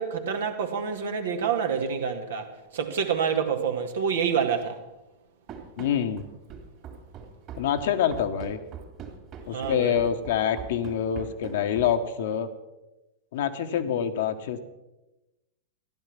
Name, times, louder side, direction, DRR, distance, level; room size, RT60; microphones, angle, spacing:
voice 1, 0.0-2.5 2.7-4.8 9.5-10.0, right 7 dB, 65° right, 1.8 m, -27 dB
Run, 5.5-12.1, right 6 dB, 35° right, 2.8 m, -42 dB
voice 2, 5.8-6.3 7.5-8.6 9.5-12.5 13.3-14.6, left 8 dB, 55° left, 1.2 m, -26 dB
14.5 x 11.5 x 6.0 m
figure-of-eight pair, 95°, 0 cm